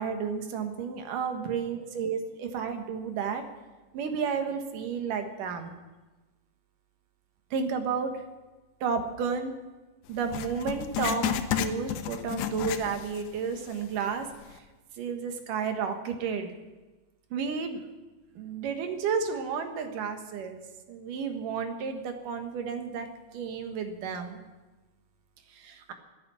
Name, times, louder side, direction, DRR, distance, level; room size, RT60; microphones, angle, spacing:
voice 1, 0.0-3.4 3.9-5.7 7.5-8.1 8.8-9.5 10.1-14.6 15.0-16.5 17.3-17.8 18.4-20.6 20.9-23.1 23.3-24.4 25.5-25.9, right 6 dB, 85° right, 6 dB, 3.0 m, -32 dB
Writing, 10.3-13.3 13.6-13.7 14.4-14.5, left 9 dB, 75° left, 2.0 m, -31 dB
11.5 x 10.5 x 9.9 m, 1.2 s
omnidirectional pair, 3.6 m